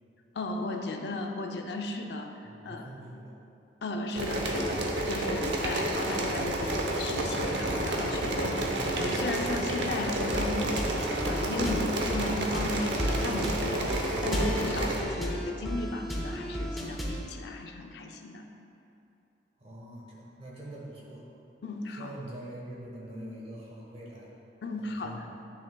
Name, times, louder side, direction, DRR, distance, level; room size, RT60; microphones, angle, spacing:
voice 1, 0.3-2.8 3.8-10.9 11.3-18.4 21.6-22.1 24.6-25.3, left 2 dB, 70° left, 3 dB, 0.5 m, -35 dB
voice 2, 2.4-3.4 19.6-21.2 22.0-24.3 24.8-25.4, right 1 dB, 35° right, -4 dB, 1.2 m, -44 dB
sound 1, 4.1-15.0, right 1 dB, 85° right, 0.8 m, -30 dB
sound 2, 10.3-17.3, equal, ahead, 0.7 m, -34 dB
10.0 x 6.3 x 2.2 m, 2.7 s
head